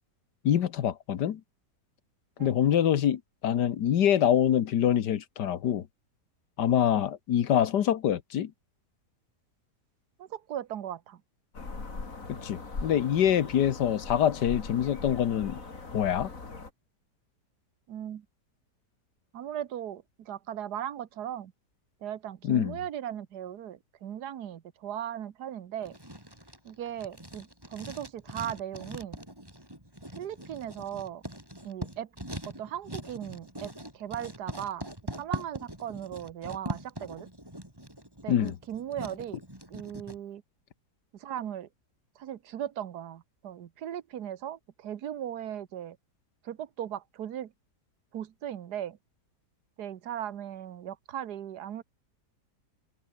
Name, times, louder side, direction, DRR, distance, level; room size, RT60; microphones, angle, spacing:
voice 1, 0.4-1.4 2.4-5.9 6.6-8.5 12.3-15.6 15.9-16.3 22.4-22.8 38.3-38.6, left 10 dB, 85° left, 1.7 m, -25 dB
voice 2, 10.2-11.2 17.9-18.3 19.3-21.5 22.0-26.0 26.6-29.2 30.2-31.2 31.6-32.1 32.5-37.3 38.2-39.4 39.7-40.4 41.1-41.7 42.2-46.0 46.4-47.5 48.1-49.0 49.8-51.8, right 10 dB, 75° right, 1.6 m, -38 dB
sound 1, 11.5-16.7, left 3 dB, 50° left, 3.5 m, -40 dB
Writing, 25.8-40.2, right 1 dB, 15° right, 5.7 m, -42 dB
omnidirectional pair, 1.8 m